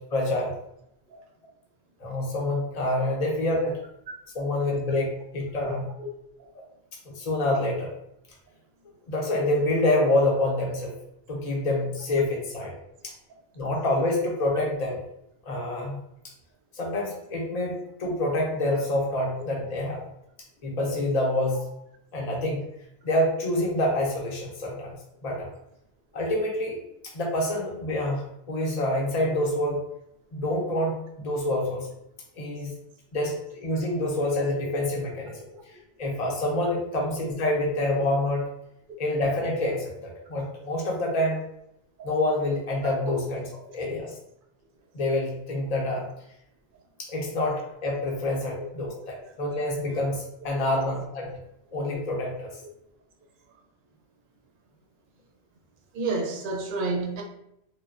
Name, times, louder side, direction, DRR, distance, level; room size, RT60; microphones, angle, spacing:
voice 1, 0.1-0.5 2.0-3.8 4.3-5.9 7.2-7.9 9.1-10.9 11.3-12.7 13.0-13.1 13.6-15.0 15.4-16.0 16.7-20.0 20.6-21.7 22.1-22.6 23.0-24.9 25.2-25.5 26.1-26.8 27.1-29.8 30.3-31.9 32.4-32.7 33.1-35.4 36.0-38.4 39.0-41.4 42.0-44.1 44.9-46.0 47.0-51.3 51.7-52.5, left 1 dB, 45° left, 0.7 m, -27 dB
voice 2, 55.9-57.2, right 3 dB, 60° right, 0.6 m, -29 dB
3.1 x 2.1 x 2.4 m
omnidirectional pair, 1.1 m